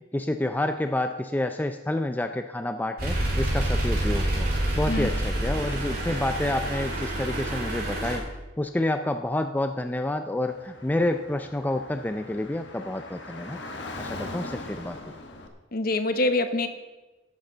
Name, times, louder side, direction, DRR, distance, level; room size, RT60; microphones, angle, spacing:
voice 1, 0.1-8.3 8.6-13.6 14.0-15.2, left 1 dB, 10° left, 7 dB, 0.4 m, -29 dB
sound 1, 3.0-8.2, right 1 dB, 50° right, 3.6 m, -27 dB
Car / Traffic noise roadway noise, 10.4-15.5, left 2 dB, 65° left, 1.4 m, -40 dB
voice 2, 15.7-16.7, left 2 dB, 50° left, 9 dB, 0.9 m, -25 dB
13.5 x 11.5 x 3.9 m, 1.1 s
head